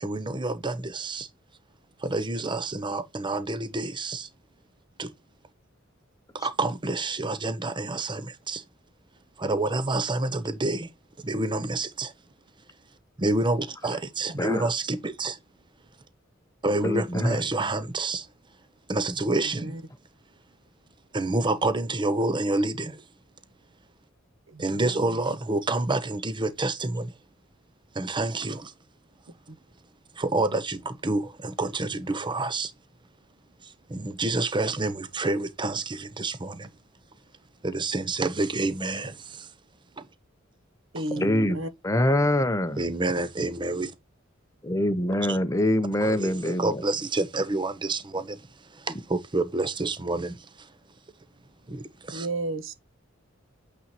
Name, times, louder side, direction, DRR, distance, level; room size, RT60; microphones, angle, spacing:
voice 1, 0.0-1.3 2.0-4.3 5.0-5.1 6.4-8.6 9.4-10.9 11.3-12.1 13.2-15.3 16.6-18.2 18.9-19.7 21.1-22.9 24.6-27.1 28.0-28.6 30.2-30.8 31.0-32.7 33.9-36.7 37.6-39.1 42.8-43.9 45.3-45.4 46.0-48.4 49.1-50.3 51.7-51.8 52.1-52.3, right 2 dB, 25° right, 0.7 m, -28 dB
voice 2, 14.4-14.7 16.8-17.4 41.1-41.6 41.8-42.8 44.6-46.8 48.9-49.0, left 1 dB, 15° left, 0.7 m, -24 dB
voice 3, 19.4-19.8 24.5-25.1 40.9-41.7 52.1-52.9, right 2 dB, 80° right, 1.3 m, -33 dB
8.5 x 4.2 x 2.9 m
head